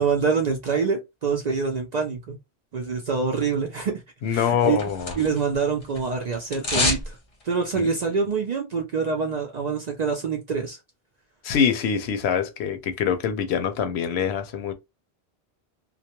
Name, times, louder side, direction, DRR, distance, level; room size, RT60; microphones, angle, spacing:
voice 1, 0.0-2.4 2.7-4.0 4.3-4.8 5.2-7.2 7.4-10.8, right 5 dB, 60° right, 0.4 m, -25 dB
voice 2, 4.2-5.2 7.7-7.9 11.4-14.7, left 7 dB, 75° left, 0.8 m, -24 dB
sound 1, 4.3-5.6 5.8-7.1 7.4-7.5, left 2 dB, 35° left, 0.7 m, -27 dB
2.3 x 2.1 x 2.8 m
omnidirectional pair, 1.1 m